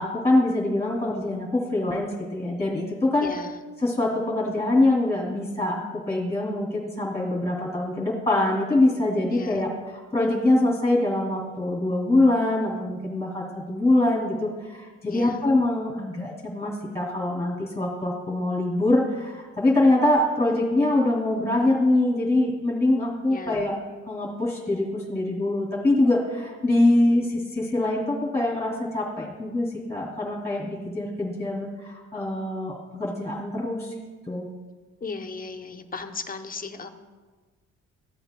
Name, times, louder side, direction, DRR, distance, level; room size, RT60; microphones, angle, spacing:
voice 1, 0.0-3.3 3.8-23.8 24.1-33.9 34.3-34.5, left 2 dB, 10° left, -3 dB, 2.4 m, -24 dB
voice 2, 3.2-3.6 9.3-9.6 15.1-15.4 23.3-23.6 35.0-36.9, left 4 dB, 30° left, 7 dB, 0.7 m, -36 dB
14.5 x 7.8 x 2.2 m, 1.4 s
cardioid pair, 90°, 30 cm